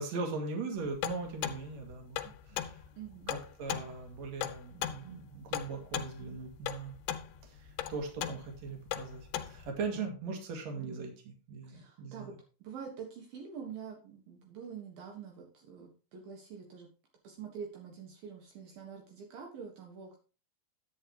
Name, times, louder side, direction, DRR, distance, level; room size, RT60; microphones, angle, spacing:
voice 1, 0.0-2.8 3.3-6.9 7.4-12.3, right 4 dB, 50° right, 3 dB, 3.0 m, -40 dB
sound 1, 1.0-9.7, left 11 dB, 80° left, 2.8 m, -38 dB
voice 2, 3.0-3.3 10.3-10.4 11.7-12.3 12.6-16.9 17.2-20.2, right 6 dB, 65° right, 1 dB, 3.2 m, -46 dB
11.0 x 9.0 x 3.0 m, 0.35 s
omnidirectional pair, 4.6 m